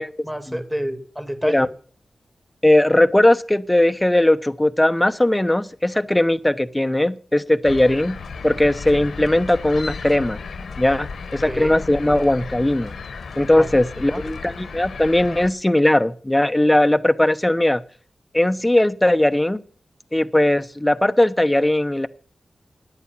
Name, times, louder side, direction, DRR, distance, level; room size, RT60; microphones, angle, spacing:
voice 1, 0.0-1.7 11.4-11.7 13.6-14.2, equal, 10° right, 8 dB, 2.5 m, -29 dB
voice 2, 2.6-8.2 8.4-10.4 10.8-12.9 13.4-17.8 18.3-19.6 20.1-22.1, left 1 dB, 15° left, 13 dB, 0.8 m, -18 dB
sound 1, 7.6-15.5, left 5 dB, 90° left, 1.2 m, -34 dB
10.5 x 8.3 x 7.2 m, 0.43 s
cardioid pair, 40°, 0 cm